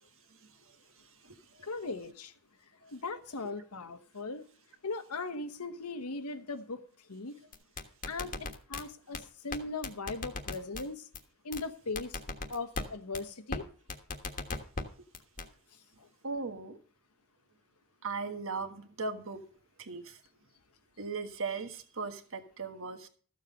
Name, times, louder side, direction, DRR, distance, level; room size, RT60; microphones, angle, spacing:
voice 1, 1.6-2.3 2.9-4.4 4.8-6.8 7.1-7.4 8.0-11.1 11.4-12.2 12.5-13.7 16.0-16.1, left 3 dB, 90° left, 10 dB, 1.2 m, -39 dB
sound 1, 7.5-8.8 9.1-9.2 9.5-9.6 9.8-10.8 11.1-11.2 11.5-11.6 12.0-12.8 13.1-13.2 13.5-13.6 13.9-14.8 15.1-15.5, left 3 dB, 35° left, 1.4 m, -36 dB
voice 2, 16.2-16.8 18.0-19.4 19.8-20.2 21.0-23.1, right 4 dB, 60° right, 7 dB, 1.5 m, -38 dB
14.0 x 7.4 x 5.3 m, 0.43 s
head